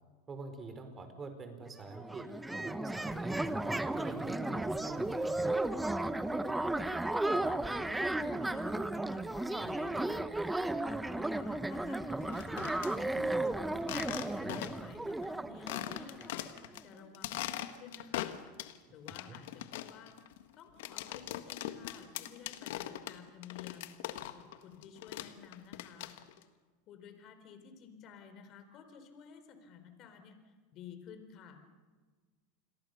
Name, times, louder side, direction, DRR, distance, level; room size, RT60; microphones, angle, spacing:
voice 1, 0.3-2.3 2.5-3.5 3.9-5.8 14.3-14.8 19.1-19.4, right 3 dB, 25° right, 7 dB, 4.6 m, -46 dB
sound 1, 1.6-1.7 1.9-16.5, right 2 dB, 5° right, 1.0 m, -34 dB
voice 2, 7.4-10.2 10.7-20.2 20.6-23.9 24.3-26.1 26.9-31.6, left 7 dB, 45° left, 8 dB, 4.2 m, -53 dB
sound 2, 12.2-12.9 13.8-14.9 15.2-15.3 15.7-16.8 17.1-18.8 19.1-24.6 24.8-26.4, left 14 dB, 75° left, 1.5 m, -41 dB
29.0 x 22.0 x 6.8 m, 1.4 s
supercardioid pair, 115°, 0 cm